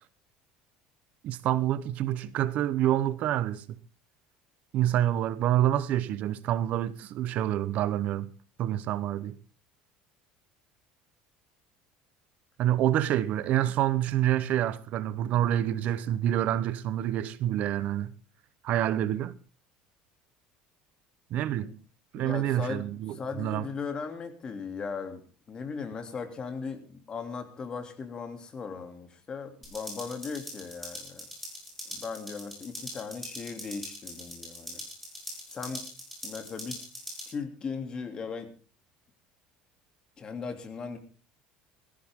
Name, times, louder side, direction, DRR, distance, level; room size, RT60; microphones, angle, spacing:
voice 1, 1.2-3.6 4.7-8.3 8.6-9.3 12.6-18.1 18.6-19.3 21.3-21.7 22.1-23.6, right 12 dB, 50° right, 0.9 m, -27 dB
voice 2, 22.1-25.2 25.5-31.3 31.9-34.8 35.5-35.8 36.2-36.8 37.3-38.5 40.2-41.0, left 5 dB, 25° left, 2.8 m, -38 dB
sound 1, 29.6-37.3, equal, ahead, 7.7 m, -42 dB
19.0 x 15.0 x 3.7 m
cardioid pair, 140°, 3 cm